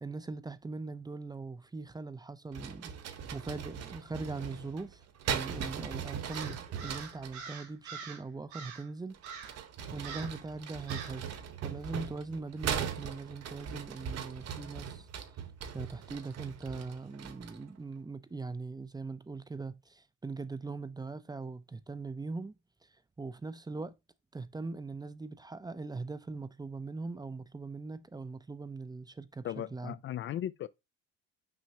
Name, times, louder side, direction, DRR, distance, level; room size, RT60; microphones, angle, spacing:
voice 1, 0.0-2.9 3.3-9.5 9.9-15.4 15.7-22.6 22.8-22.9 23.2-23.9 24.3-30.0, right 3 dB, 10° right, 0.6 m, -41 dB
sound 1, 2.5-7.4 9.1-17.7, right 8 dB, 50° right, 1.3 m, -40 dB
Crow, 6.3-8.2 8.5-8.9 9.2-9.6 10.0-10.4 10.9-11.2, right 6 dB, 85° right, 2.6 m, -44 dB
voice 2, 29.4-30.7, left 11 dB, 40° left, 0.4 m, -37 dB
6.1 x 5.3 x 2.9 m
hypercardioid pair, 75°, 33 cm